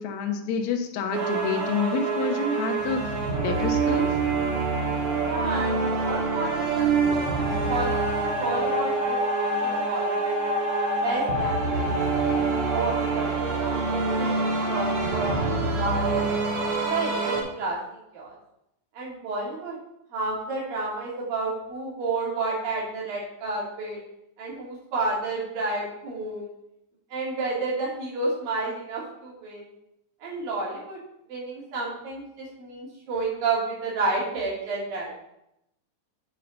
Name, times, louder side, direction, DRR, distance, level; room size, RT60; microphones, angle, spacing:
voice 1, 0.0-3.1 3.4-4.1, left 5 dB, 70° left, 4 dB, 1.9 m, -28 dB
sound 1, 1.1-17.4, right 3 dB, 65° right, 3.5 m, -26 dB
voice 2, 5.2-7.1 7.7-9.2 9.6-10.2 11.0-11.9 12.1-12.4 12.7-13.8 14.2-16.3 16.9-18.4 18.9-19.8 20.1-24.0 24.4-26.5 27.1-29.7 30.2-31.0 31.3-35.1, right 3 dB, 80° right, -5 dB, 4.3 m, -31 dB
7.8 x 5.6 x 5.3 m, 0.82 s
omnidirectional pair, 4.0 m